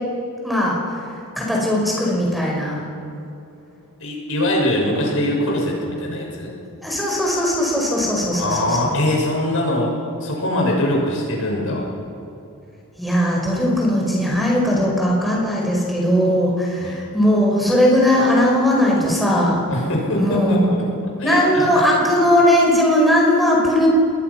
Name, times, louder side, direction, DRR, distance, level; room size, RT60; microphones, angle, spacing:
voice 1, 0.4-2.9 6.8-8.9 13.0-19.6 20.2-20.7 21.2-23.9, left 1 dB, ahead, -3 dB, 5.1 m, -18 dB
voice 2, 4.0-6.5 8.3-11.9 16.8-17.0 19.7-20.8 21.2-21.7, left 1 dB, 65° left, -1 dB, 6.4 m, -22 dB
26.5 x 21.0 x 5.9 m, 2.8 s
head